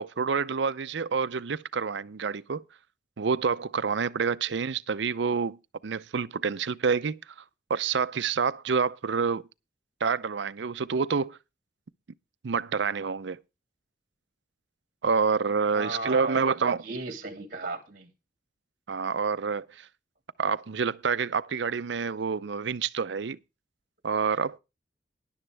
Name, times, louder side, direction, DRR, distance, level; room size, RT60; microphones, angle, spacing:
voice 1, 0.0-2.6 3.2-5.6 5.8-7.2 7.7-9.4 10.0-11.4 12.4-13.4 15.0-16.8 18.9-19.9 20.4-23.4 24.0-24.6, right 5 dB, 70° right, 0.5 m, -28 dB
voice 2, 15.7-18.1, right 2 dB, 45° right, 2.5 m, -36 dB
13.0 x 11.0 x 3.4 m
head